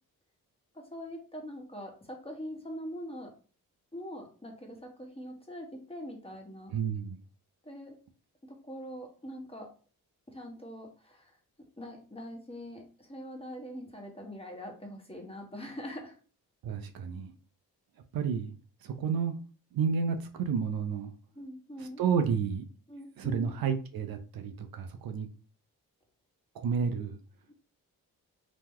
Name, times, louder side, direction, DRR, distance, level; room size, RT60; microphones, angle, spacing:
voice 1, 0.7-3.3 3.9-6.7 7.6-7.9 8.4-9.7 10.3-11.4 11.8-16.2 21.3-22.0 22.9-23.5 27.5-27.6, equal, 15° left, 1 dB, 1.2 m, -43 dB
voice 2, 6.7-7.2 16.6-17.3 18.1-18.5 18.8-19.4 19.7-21.1 21.8-22.6 23.2-25.3 26.5-27.2, right 6 dB, 65° right, 7 dB, 0.6 m, -31 dB
3.0 x 2.1 x 3.5 m, 0.37 s
cardioid pair, 55°, 39 cm